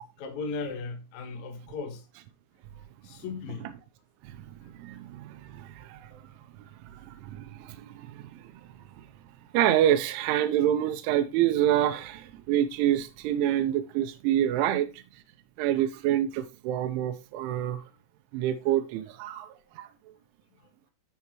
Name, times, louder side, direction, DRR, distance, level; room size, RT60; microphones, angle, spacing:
voice 1, 0.0-2.1 3.0-3.7, left 4 dB, 90° left, 1.6 m, -37 dB
voice 2, 4.2-6.2 6.9-8.5 9.0-9.1 9.5-15.0 15.6-17.8 18.3-19.5 19.8-19.9, right 11 dB, 80° right, 3.0 m, -27 dB
13.0 x 4.9 x 2.9 m
omnidirectional pair, 5.7 m